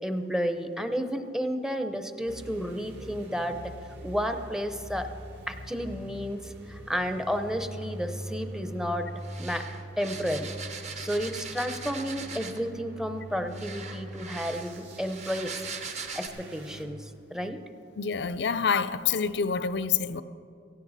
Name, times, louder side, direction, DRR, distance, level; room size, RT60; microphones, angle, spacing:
voice 1, 0.0-3.7 4.0-5.1 5.5-9.1 9.4-9.6 10.0-10.5 11.0-15.5 16.1-17.6, equal, 5° right, 8 dB, 0.7 m, -32 dB
sound 1, 2.3-16.9, right 1 dB, 70° right, 2.0 m, -43 dB
sound 2, 9.2-12.7 13.5-16.3, right 5 dB, 40° right, 1.0 m, -40 dB
voice 2, 18.0-20.2, left 6 dB, 60° left, 14 dB, 0.5 m, -27 dB
17.5 x 15.5 x 4.1 m, 2.5 s
head